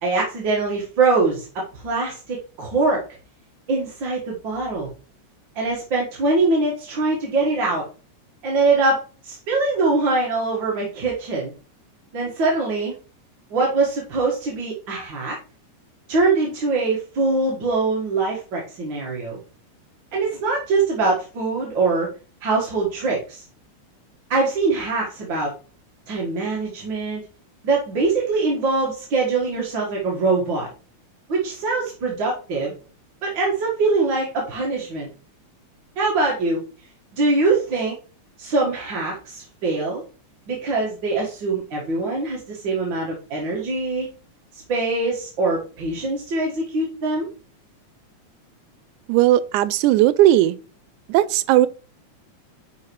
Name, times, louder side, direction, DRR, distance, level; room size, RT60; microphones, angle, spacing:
voice 1, 0.0-3.0 3.7-4.9 5.6-7.9 8.4-11.5 12.1-12.9 13.5-15.4 16.1-19.4 20.1-22.1 22.4-23.4 24.3-25.5 26.1-27.2 27.6-30.7 31.3-32.7 33.2-35.1 36.0-36.6 37.1-38.0 38.4-40.0 40.5-44.1 44.5-47.3, right 3 dB, 45° right, 1.9 m, -23 dB
voice 2, 49.1-50.6 51.1-51.7, right 14 dB, 90° right, 2.0 m, -16 dB
10.5 x 4.2 x 3.1 m
omnidirectional pair, 3.4 m